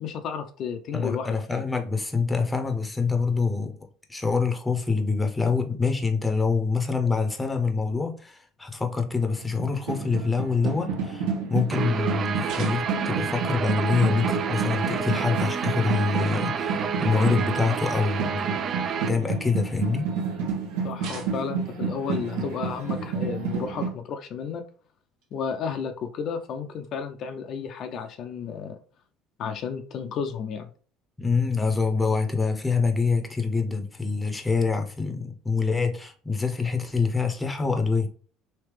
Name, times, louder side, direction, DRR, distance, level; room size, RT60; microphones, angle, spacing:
voice 1, 0.0-1.7 20.8-24.6 25.3-28.8 29.4-30.7, left 6 dB, 55° left, 0.4 m, -32 dB
voice 2, 0.9-3.8 4.1-18.5 19.1-20.1 31.2-38.1, left 4 dB, 10° left, 0.7 m, -25 dB
sound 1, 9.4-23.9, right 5 dB, 90° right, 1.1 m, -31 dB
Guitar, 11.7-19.1, right 6 dB, 45° right, 0.3 m, -29 dB
sound 2, 12.4-13.2 14.5-15.1 16.1-16.2 16.7-16.8 19.0-19.8 21.0-21.7 23.4-23.6 25.2-25.3 26.5-26.6 27.8-28.1, right 4 dB, 65° right, 0.9 m, -44 dB
3.3 x 2.8 x 3.2 m
supercardioid pair, 90°, 0 cm